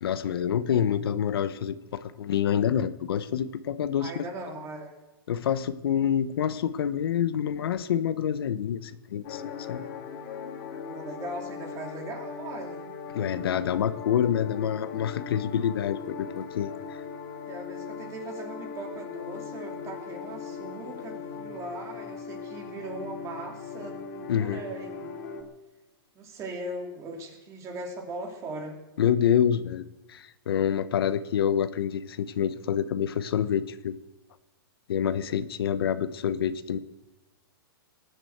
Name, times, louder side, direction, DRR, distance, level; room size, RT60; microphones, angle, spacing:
voice 1, 0.0-4.2 5.3-9.4 9.7-9.8 13.1-17.0 24.3-24.6 29.0-33.9 34.9-36.8, left 9 dB, 75° left, 13 dB, 0.9 m, -27 dB
voice 2, 4.0-4.9 10.8-12.9 17.5-25.1 26.1-28.8, right 2 dB, 25° right, 2 dB, 3.0 m, -39 dB
sound 1, 9.2-25.4, left 6 dB, 50° left, 2.5 m, -39 dB
19.0 x 7.8 x 8.0 m, 1.0 s
hypercardioid pair, 150°, 13 cm